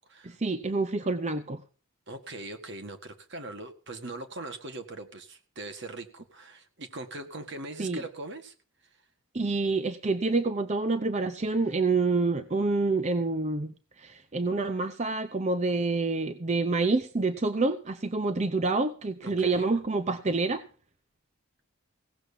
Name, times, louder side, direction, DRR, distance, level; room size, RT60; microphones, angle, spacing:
voice 1, 0.2-1.6 7.8-8.0 9.3-20.6, right 3 dB, 35° right, 9 dB, 0.7 m, -27 dB
voice 2, 2.1-8.5 19.2-19.7, right 2 dB, 60° right, 7 dB, 1.8 m, -41 dB
17.0 x 7.0 x 6.8 m, 0.39 s
head